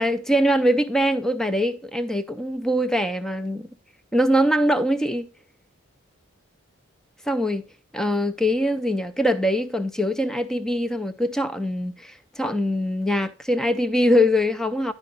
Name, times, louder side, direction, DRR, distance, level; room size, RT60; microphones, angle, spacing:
voice 1, 0.0-3.7 4.1-5.3 7.3-7.6 7.9-14.9, equal, 5° left, 0.3 m, -22 dB
10.5 x 4.5 x 4.0 m
head